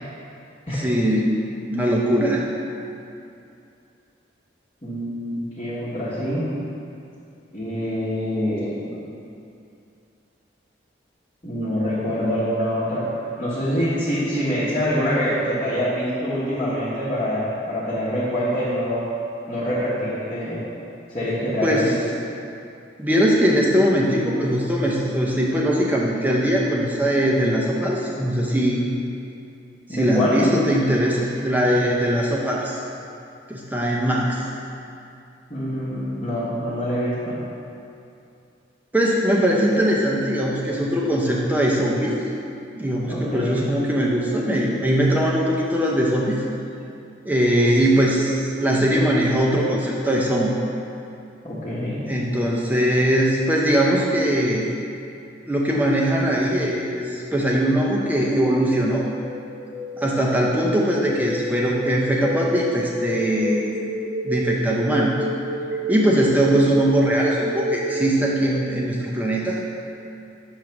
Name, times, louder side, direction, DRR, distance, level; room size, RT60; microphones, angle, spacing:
voice 1, 0.7-2.5 21.6-21.9 23.0-28.9 29.9-32.8 33.5-34.4 38.9-42.2 42.7-46.4 47.2-50.5 52.0-54.7 55.5-59.1 60.0-63.8 64.2-65.1 65.9-69.6, equal, 10° right, -3 dB, 0.5 m, -21 dB
voice 2, 4.8-6.5 7.5-8.9 11.4-13.1 13.4-19.1 19.5-20.6 21.1-22.0 29.9-30.4 35.5-37.4 43.1-43.6 51.4-52.1, equal, 30° left, -12 dB, 1.0 m, -25 dB
sound 1, 59.1-68.8, right 1 dB, 10° left, 1.4 m, -29 dB
6.2 x 3.1 x 5.8 m, 2.6 s
head